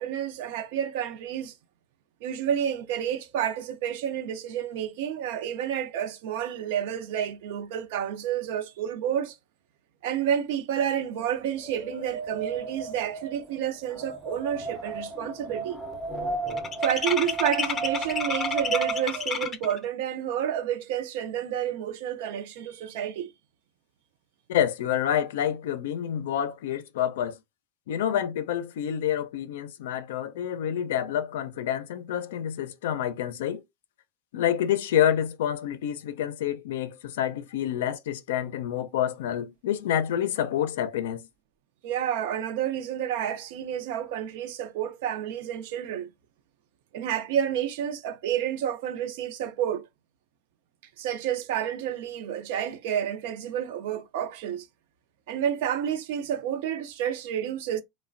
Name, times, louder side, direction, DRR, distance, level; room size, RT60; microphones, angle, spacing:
voice 1, 0.0-1.5 2.2-9.4 10.0-15.8 16.8-23.3 41.8-46.1 46.9-49.8 51.0-54.7 55.3-57.8, right 9 dB, 75° right, 0.5 m, -30 dB
Wind, 11.4-19.3, right 4 dB, 20° right, 0.6 m, -34 dB
sound 1, 14.1-14.2 14.5-14.9 15.1-19.8, left 6 dB, 25° left, 0.5 m, -32 dB
voice 2, 24.5-27.4 27.9-33.6 34.3-41.3, left 10 dB, 85° left, 0.4 m, -28 dB
3.1 x 2.1 x 2.5 m
supercardioid pair, 130°, 0 cm